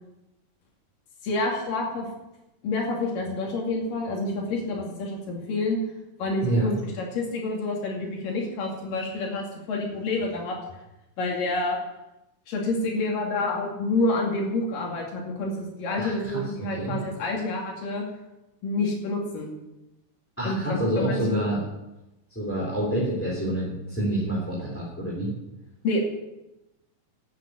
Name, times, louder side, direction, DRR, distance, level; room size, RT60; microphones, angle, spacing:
voice 1, 1.2-2.1 2.6-5.8 6.2-10.6 11.2-11.8 12.5-18.0 18.6-19.5 20.4-21.4 25.8-26.2, left 2 dB, 85° left, 0 dB, 4.1 m, -28 dB
voice 2, 16.0-17.0 20.4-21.6 22.3-25.3, right 1 dB, 5° left, -6 dB, 3.3 m, -27 dB
11.5 x 9.1 x 9.7 m, 0.96 s
omnidirectional pair, 3.7 m